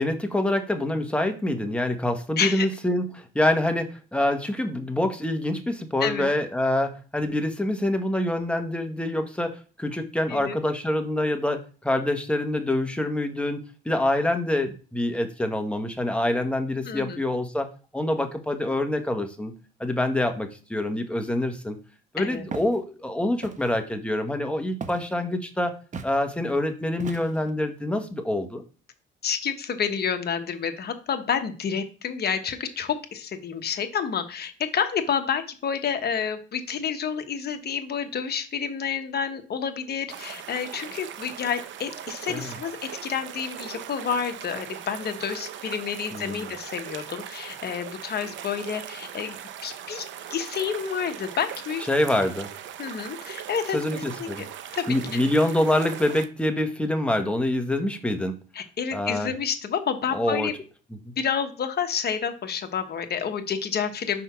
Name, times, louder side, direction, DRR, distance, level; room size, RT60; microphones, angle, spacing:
voice 1, 0.0-13.6 13.8-19.5 19.8-21.8 22.1-25.7 26.0-28.6 42.3-42.5 46.1-46.5 51.9-52.5 53.7-54.5 54.9-58.4 58.9-59.3 60.1-60.5, left 1 dB, 5° left, 5 dB, 1.1 m, -26 dB
voice 2, 16.9-17.2 22.2-22.4 29.2-42.8 43.0-49.4 49.6-50.0 50.3-51.8 52.1-52.3 52.8-53.8 54.2-54.3 54.7-55.2 58.5-60.5 61.2-64.2, left 7 dB, 55° left, 7 dB, 1.0 m, -29 dB
Walk footsteps, 22.5-22.8 23.4-23.8 24.8-25.1 25.9-26.2 27.0-27.5, right 5 dB, 40° right, 0.8 m, -37 dB
sound 1, 40.1-56.3, right 9 dB, 70° right, 0.7 m, -39 dB
4.6 x 4.1 x 5.7 m, 0.37 s
cardioid pair, 90°, 20 cm